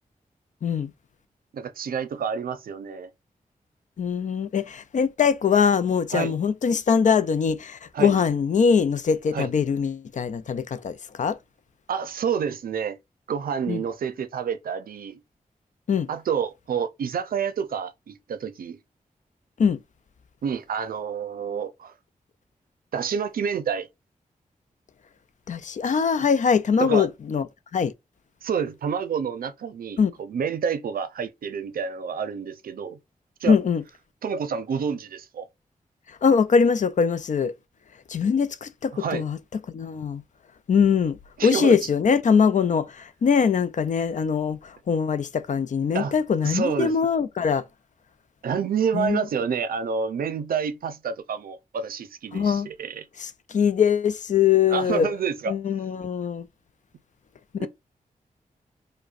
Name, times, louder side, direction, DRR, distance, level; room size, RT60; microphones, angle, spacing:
voice 1, 1.5-3.1 6.1-6.4 7.9-8.1 9.3-9.5 11.9-13.0 13.3-15.2 16.1-18.8 20.4-21.9 22.9-23.9 26.2-26.3 26.8-27.1 28.4-33.0 33.4-33.6 34.2-35.5 38.9-39.2 41.4-41.8 45.9-46.1 46.4-46.9 48.4-53.0 54.7-55.5 57.6-57.7, right 6 dB, 85° right, 0.5 m, -28 dB
voice 2, 4.0-11.4 13.7-13.8 15.9-16.1 19.6-19.8 25.5-27.5 27.7-27.9 30.0-30.1 33.5-33.8 36.1-37.5 38.1-39.4 39.7-40.2 40.7-47.6 48.9-49.2 52.3-52.7 53.2-55.1 55.5-56.5 57.6-57.7, left 6 dB, 60° left, 0.4 m, -22 dB
4.9 x 2.1 x 2.4 m
wide cardioid pair, 90°, 15 cm